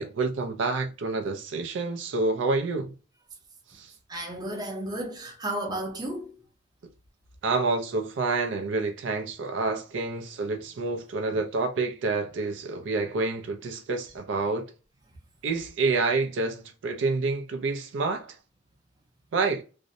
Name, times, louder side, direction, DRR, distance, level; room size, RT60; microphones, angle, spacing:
voice 1, 0.0-3.0 3.7-3.9 7.4-14.7 15.4-18.4 19.3-19.6, right 3 dB, 70° right, 0.4 m, -28 dB
voice 2, 4.1-6.3, right 1 dB, 20° right, 0.6 m, -33 dB
2.5 x 2.0 x 2.5 m
head